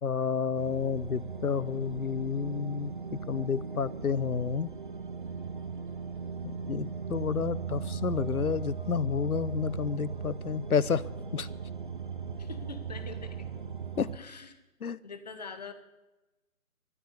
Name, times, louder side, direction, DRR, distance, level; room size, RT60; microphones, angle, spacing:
voice 1, 0.0-2.9 3.3-4.7 6.4-11.0 11.3-11.5 14.0-14.1 14.8-15.0, left 6 dB, 80° left, 19 dB, 0.9 m, -30 dB
sound 1, 0.5-14.2, right 5 dB, 35° right, 0.8 m, -38 dB
voice 2, 12.4-13.5 14.1-14.6 15.0-15.7, left 4 dB, 30° left, 10 dB, 1.2 m, -44 dB
14.0 x 8.8 x 9.8 m, 1.1 s
figure-of-eight pair, 160°, 43 cm